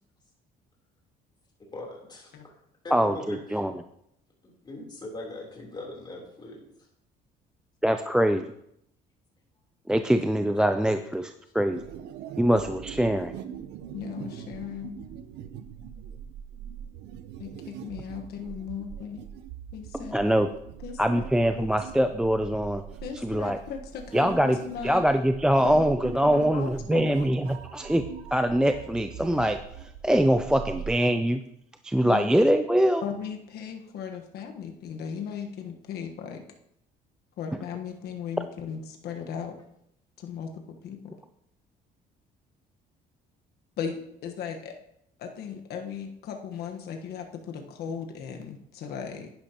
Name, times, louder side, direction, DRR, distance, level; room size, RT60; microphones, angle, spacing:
voice 1, 1.6-2.5 2.8-3.6 4.6-6.7, left 2 dB, 25° left, -2 dB, 3.5 m, -40 dB
voice 2, 2.9-3.7 7.8-8.4 9.9-11.8 12.4-13.3 19.9-20.5 21.0-22.8 23.2-23.6 24.1-24.6 24.8-28.0 28.3-29.6 30.0-31.4 31.8-33.0, equal, 5° right, 8 dB, 0.5 m, -23 dB
sound 1, 11.7-31.0, right 9 dB, 80° right, 0.7 m, -42 dB
voice 3, 13.9-15.0 17.4-19.2 19.7-20.2 20.8-21.3 21.5-21.9 23.0-25.0 25.6-27.2 32.0-32.3 33.0-36.4 37.4-39.6 40.2-40.5 40.8-41.1 43.8-44.7 45.2-49.3, left 7 dB, 70° left, 3 dB, 1.3 m, -37 dB
10.5 x 10.5 x 2.9 m, 0.75 s
cardioid pair, 110°, 17 cm